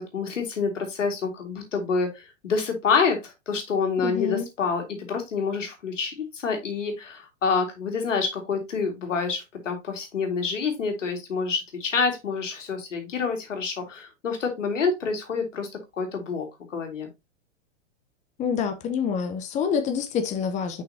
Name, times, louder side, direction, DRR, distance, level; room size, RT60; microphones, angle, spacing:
voice 1, 0.0-15.7 16.0-17.1, left 5 dB, 85° left, 2.3 m, -27 dB
voice 2, 4.0-4.5 18.4-20.8, left 7 dB, 20° left, 0.8 m, -27 dB
6.1 x 5.6 x 2.8 m
hypercardioid pair, 125°, 37 cm